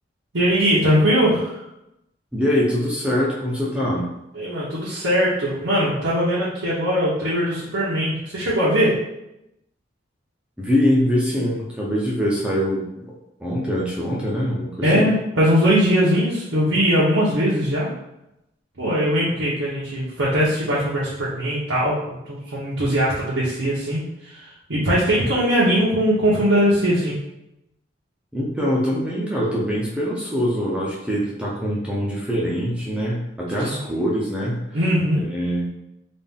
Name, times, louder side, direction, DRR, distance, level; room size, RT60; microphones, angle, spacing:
voice 1, 0.3-1.6 4.3-9.0 14.8-17.9 18.8-27.2 33.6-33.8 34.7-35.2, equal, 90° right, -9 dB, 1.0 m, -20 dB
voice 2, 2.3-4.1 10.6-12.9 13.4-15.1 28.3-34.6 35.3-35.7, equal, 5° right, -5 dB, 0.6 m, -23 dB
4.1 x 2.5 x 3.5 m, 0.87 s
head